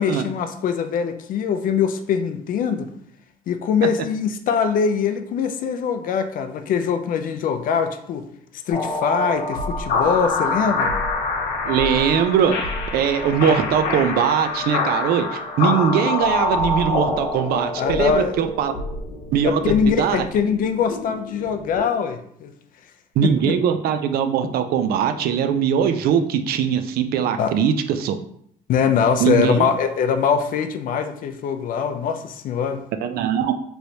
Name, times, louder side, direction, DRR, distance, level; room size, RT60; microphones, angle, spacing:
voice 1, 0.0-2.9 3.5-8.3 8.7-10.9 17.8-18.3 19.4-22.5 23.2-23.6 27.4-27.5 28.7-32.8, left 7 dB, 55° left, 8 dB, 0.4 m, -22 dB
sound 1, 8.7-21.8, left 3 dB, 75° left, 0.8 m, -26 dB
voice 2, 11.7-12.6 12.9-18.7 19.3-20.3 23.2-28.2 29.2-29.7 33.0-33.5, right 8 dB, 65° right, 8 dB, 0.4 m, -21 dB
3.2 x 3.0 x 2.7 m, 0.68 s
cardioid pair, 110°, 17 cm